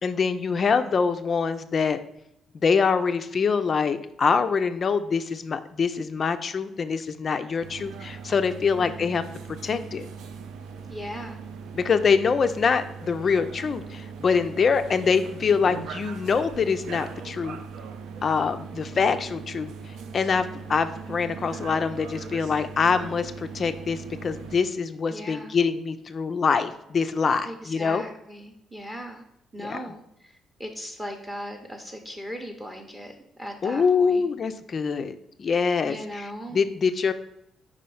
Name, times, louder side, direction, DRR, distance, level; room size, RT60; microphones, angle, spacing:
voice 1, 0.0-2.0 2.5-9.2 9.6-10.1 11.7-17.6 18.2-28.0 29.6-29.9 33.6-37.1, left 5 dB, 35° left, 10 dB, 0.3 m, -24 dB
sound 1, 7.6-24.6, right 6 dB, 85° right, 0.6 m, -40 dB
voice 2, 8.7-9.3 10.9-11.4 25.1-25.5 27.4-29.2 29.5-34.2 35.9-36.6, equal, 10° right, 3 dB, 0.6 m, -38 dB
5.0 x 4.3 x 5.4 m, 0.79 s
cardioid pair, 170°, 0 cm